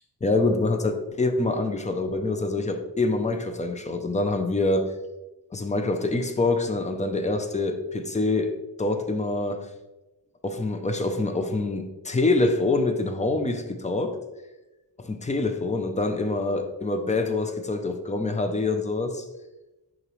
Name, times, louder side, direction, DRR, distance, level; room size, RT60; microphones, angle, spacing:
voice 1, 0.2-4.9 5.5-9.7 10.4-14.2 15.0-19.2, left 2 dB, 15° left, 7 dB, 0.5 m, -25 dB
6.6 x 5.1 x 3.1 m, 1.0 s
wide cardioid pair, 160°, 42 cm